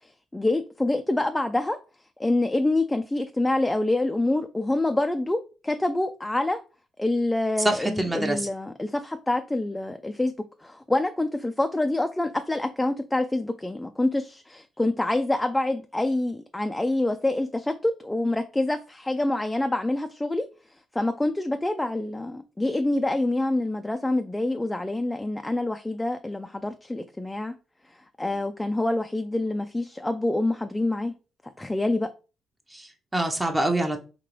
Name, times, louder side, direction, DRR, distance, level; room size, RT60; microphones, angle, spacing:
voice 1, 0.0-1.8 2.2-6.6 7.0-10.3 10.6-20.5 20.9-27.5 27.9-31.1 31.6-32.1, left 2 dB, 10° left, 0.3 m, -26 dB
voice 2, 7.6-8.5 32.7-34.0, right 1 dB, 15° right, 0.7 m, -26 dB
3.7 x 2.8 x 3.1 m
cardioid pair, 90°, 0 cm